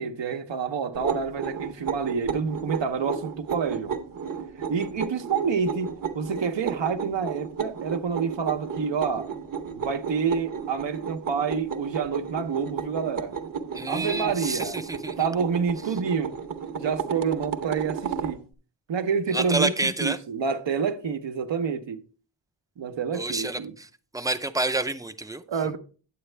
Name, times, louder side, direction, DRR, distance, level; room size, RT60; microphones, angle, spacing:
voice 1, 0.0-3.9 4.6-9.3 9.7-13.3 13.9-14.8 15.2-16.4 16.8-18.4 18.9-22.0 22.8-23.7 25.5-25.8, right 6 dB, 80° right, 0.9 m, -28 dB
sound 1, 0.9-18.4, right 6 dB, 50° right, 0.9 m, -33 dB
voice 2, 13.7-15.1 19.3-20.2 23.1-23.9 24.1-25.4, right 2 dB, 10° right, 0.5 m, -28 dB
8.9 x 8.5 x 3.2 m
wide cardioid pair, 105°, 44 cm